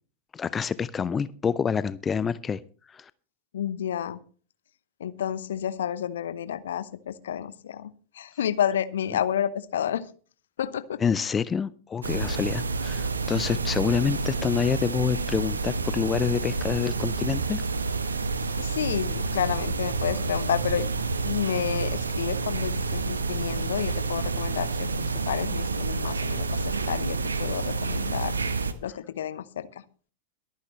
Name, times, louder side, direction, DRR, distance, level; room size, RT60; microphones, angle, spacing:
voice 1, 0.3-2.6 2.9-3.1 11.0-17.6, left 6 dB, 20° left, 18 dB, 0.5 m, -27 dB
voice 2, 3.5-4.2 5.0-10.0 10.6-11.0 18.6-20.9 21.2-24.9 25.3-29.7, left 9 dB, 60° left, 15 dB, 0.9 m, -30 dB
sound 1, 12.0-28.7, right 4 dB, 75° right, 1.1 m, -29 dB
22.5 x 9.5 x 3.2 m, 0.40 s
figure-of-eight pair, 90°, 0 cm